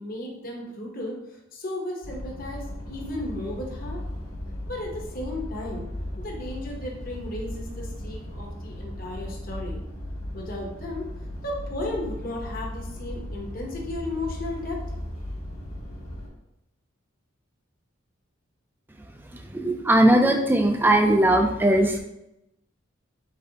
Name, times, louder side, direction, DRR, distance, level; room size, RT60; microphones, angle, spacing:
voice 1, 0.0-4.0 4.7-5.9 6.2-9.8 10.3-11.1 11.4-14.8, left 1 dB, 40° left, -1 dB, 0.9 m, -34 dB
sound 1, 2.0-16.3, left 1 dB, 80° left, 1.4 m, -36 dB
voice 2, 19.5-22.0, right 1 dB, 10° right, 4 dB, 0.3 m, -19 dB
4.4 x 4.0 x 2.8 m, 0.88 s
head